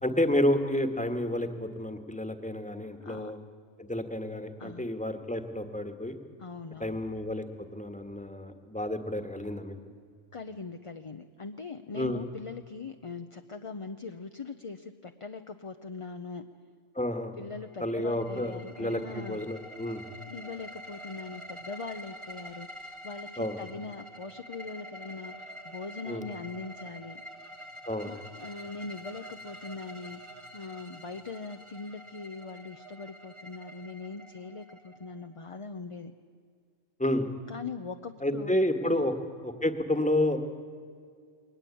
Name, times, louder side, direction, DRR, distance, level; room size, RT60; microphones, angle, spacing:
voice 1, 0.0-3.4 3.8-6.2 6.8-7.4 7.7-9.8 11.9-12.2 16.9-17.4 17.8-20.0 23.4-23.6 26.1-26.2 27.9-28.1 37.0-37.3 38.2-39.1 39.4-40.4, left 1 dB, 5° left, 7 dB, 1.5 m, -30 dB
voice 2, 3.0-3.3 4.6-4.8 6.4-7.0 10.3-16.5 17.4-19.5 20.2-27.5 28.0-36.1 37.5-38.5 38.8-39.0, left 4 dB, 35° left, 7 dB, 0.6 m, -41 dB
sound 1, 17.6-35.5, equal, 25° right, 1.6 m, -47 dB
22.0 x 19.0 x 8.5 m, 2.1 s
omnidirectional pair, 1.3 m